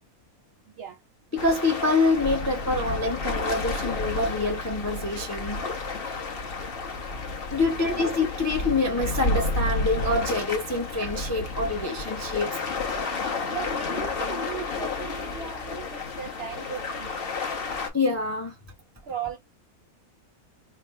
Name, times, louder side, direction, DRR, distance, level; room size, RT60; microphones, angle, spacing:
voice 1, 0.7-1.0 7.5-8.0 13.5-17.3 19.0-19.4, right 8 dB, 60° right, 0.7 m, -37 dB
voice 2, 1.3-5.6 7.5-12.6 17.9-18.5, left 2 dB, 20° left, 0.4 m, -26 dB
sound 1, 1.4-17.9, left 3 dB, 45° left, 1.0 m, -31 dB
3.7 x 2.0 x 4.3 m
omnidirectional pair, 1.5 m